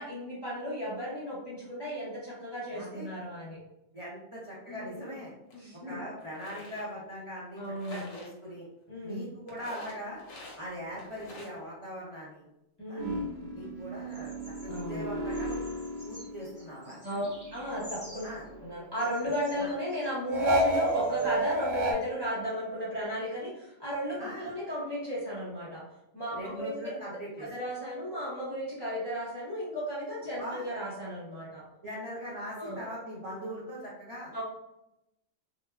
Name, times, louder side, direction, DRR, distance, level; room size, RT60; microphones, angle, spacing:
voice 1, 0.0-3.6 4.7-5.2 5.5-6.0 7.6-8.1 8.9-9.3 12.8-13.3 14.7-15.1 17.0-18.3 18.6-25.8 26.1-26.9 27.4-31.6 32.5-32.9 34.3-34.4, equal, 25° left, -8 dB, 0.5 m, -35 dB
voice 2, 2.7-3.1 3.9-5.3 5.9-8.7 9.0-10.2 10.6-12.4 12.9-13.0 13.5-15.6 16.0-17.3 18.2-18.4 19.6-19.7 24.2-24.5 26.4-27.5 30.4-30.6 31.8-34.3, equal, 45° right, -8 dB, 0.4 m, -41 dB
sound 1, 5.5-5.6 6.2-6.9 7.7-8.3 9.5-10.6 10.9-11.6, left 2 dB, 70° left, 1.1 m, -47 dB
sound 2, 13.0-16.9 17.2-18.8 20.3-21.9, right 1 dB, 85° right, 1.0 m, -32 dB
Bird vocalization bird call bird song, 14.1-14.9 15.3-18.5 18.9-21.3 21.6-21.7, equal, 10° right, 0.9 m, -51 dB
3.1 x 2.2 x 2.2 m, 0.88 s
omnidirectional pair, 1.4 m